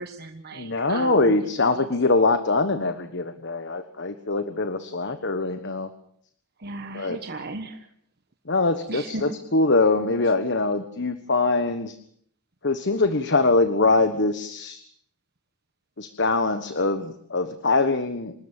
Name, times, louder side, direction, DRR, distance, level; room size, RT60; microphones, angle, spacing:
voice 1, 0.0-1.9 6.6-7.9 8.9-9.3, right 2 dB, 45° right, 6 dB, 1.3 m, -35 dB
voice 2, 0.5-5.9 6.9-7.2 8.4-12.0 12.6-14.8 16.0-18.3, left 3 dB, 55° left, 10 dB, 1.4 m, -23 dB
26.5 x 13.5 x 9.0 m, 0.63 s
head